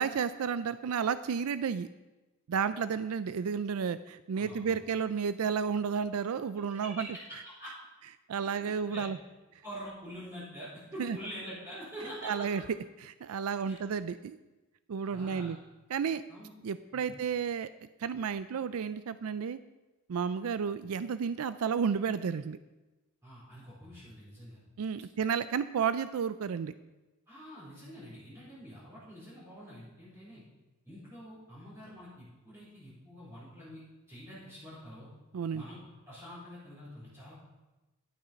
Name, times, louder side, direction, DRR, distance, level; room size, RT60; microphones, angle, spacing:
voice 1, 0.0-1.9 2.5-7.1 8.3-9.2 11.0-11.2 12.2-12.6 13.0-14.4 14.9-15.6 15.9-16.2 16.6-17.7 18.0-19.6 20.1-22.6 24.8-26.7 35.3-35.6, right 6 dB, 85° right, 14 dB, 0.4 m, -32 dB
voice 2, 4.3-4.8 6.7-7.7 8.4-8.5 8.8-9.0 9.6-12.3 13.6-13.8 15.1-15.5 16.3-16.5 16.9-17.2 23.2-24.6 27.3-30.4 30.8-33.8 34.1-35.1 35.5-35.8 36.0-37.3, equal, 15° right, -13 dB, 4.4 m, -46 dB
11.5 x 8.7 x 5.2 m, 1.1 s
head